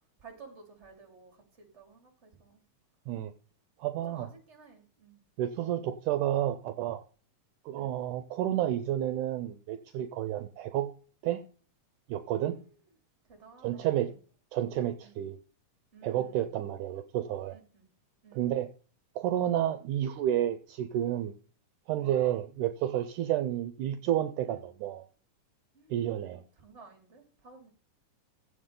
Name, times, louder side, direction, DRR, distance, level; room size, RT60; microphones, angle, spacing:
voice 1, 0.2-2.6 4.1-5.2 7.8-8.0 10.3-10.5 12.3-12.7 13.3-14.2 15.0-15.2 15.9-16.5 17.5-17.9 18.2-18.5 22.0-22.3 23.2-23.3 24.4-24.6 25.7-26.3 26.6-27.7, right 4 dB, 20° right, 3.1 m, -55 dB
voice 2, 3.8-4.3 5.4-7.0 7.7-10.9 11.2-11.4 12.1-12.6 13.6-14.1 14.5-15.4 16.0-17.6 18.3-18.7 19.2-21.3 21.9-25.1 25.9-26.4, right 12 dB, 75° right, 2.1 m, -30 dB
16.0 x 7.9 x 3.8 m
omnidirectional pair, 3.8 m